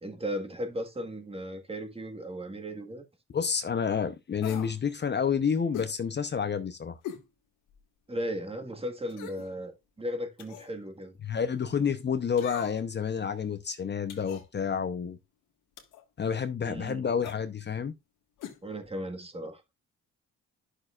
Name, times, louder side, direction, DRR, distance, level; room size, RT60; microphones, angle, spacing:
voice 1, 0.0-3.0 8.1-11.1 16.6-17.1 18.6-19.6, equal, 20° right, 1.7 m, -36 dB
voice 2, 3.3-7.0 11.2-15.2 16.2-17.9, left 6 dB, 35° left, 0.8 m, -29 dB
sound 1, 4.4-4.8 5.7-6.0 7.0-7.3 7.8-7.9 9.1-9.5 10.4-10.7 12.4-12.9 14.1-14.5 15.8-16.0 17.2-17.4 18.4-18.6 18.9-19.0, left 10 dB, 90° left, 1.8 m, -41 dB
11.0 x 6.5 x 2.4 m
cardioid pair, 90°, 30 cm